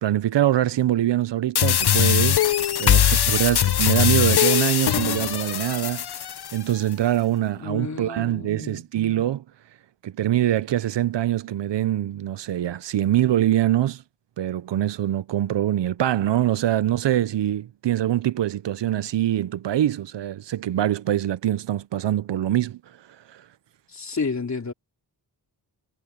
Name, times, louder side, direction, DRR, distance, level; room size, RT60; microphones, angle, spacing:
voice 1, 0.0-2.4 2.8-6.0 6.5-9.4 10.0-14.0 14.4-22.8 23.3-23.4, right 12 dB, 75° right, 0.6 m, -24 dB
sound 1, 1.5-6.6, left 10 dB, 60° left, 0.8 m, -21 dB
voice 2, 7.6-8.8 23.9-24.7, left 4 dB, 40° left, 3.7 m, -31 dB
wide cardioid pair, 150°, 43 cm